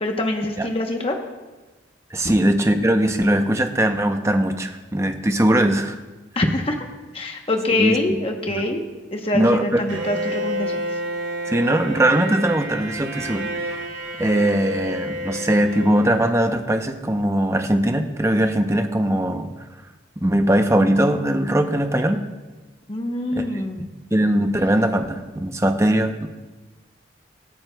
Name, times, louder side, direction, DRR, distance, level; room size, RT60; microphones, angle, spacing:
voice 1, 0.0-1.2 6.4-6.8 7.1-8.8 9.1-11.0 22.9-23.9, left 2 dB, 30° left, 3 dB, 0.9 m, -24 dB
voice 2, 2.1-6.0 7.7-8.0 8.5-8.6 9.3-9.8 11.5-13.8 14.2-19.5 20.2-22.2 23.3-23.6 24.1-26.3, right 1 dB, 15° right, 6 dB, 0.6 m, -20 dB
Bowed string instrument, 9.9-16.8, right 1 dB, 90° right, 2.1 m, -30 dB
24.5 x 9.4 x 2.3 m, 1.2 s
head